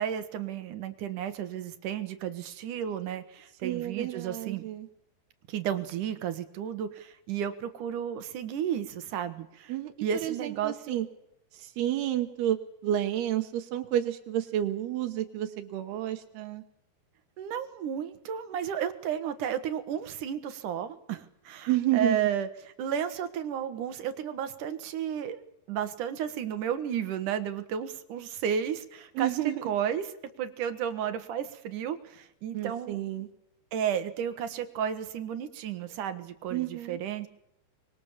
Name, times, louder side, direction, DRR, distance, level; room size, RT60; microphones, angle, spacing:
voice 1, 0.0-4.7 5.5-9.7 10.0-11.0 17.4-29.3 29.6-30.0 30.4-33.0 33.7-37.3, right 8 dB, 65° right, 10 dB, 2.5 m, -33 dB
voice 2, 3.6-4.9 9.7-11.1 11.5-16.6 21.7-22.2 29.1-29.6 32.5-33.3 36.5-37.0, right 12 dB, 90° right, 5 dB, 3.2 m, -30 dB
25.0 x 21.5 x 7.3 m, 0.79 s
omnidirectional pair, 4.4 m